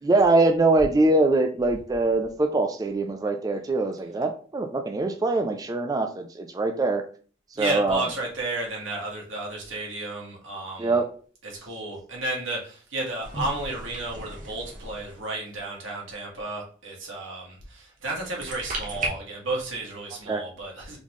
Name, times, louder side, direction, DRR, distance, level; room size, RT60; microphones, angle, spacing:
voice 1, 0.0-7.0 7.5-8.1 10.8-11.1 20.3-20.4, right 2 dB, 20° right, 5 dB, 0.3 m, -23 dB
voice 2, 7.5-11.0 11.4-21.0, right 2 dB, 85° right, -2 dB, 1.7 m, -33 dB
sound 1, 13.2-15.4 18.1-19.1, right 2 dB, 40° right, 1.1 m, -35 dB
4.0 x 3.6 x 3.1 m, 0.42 s
head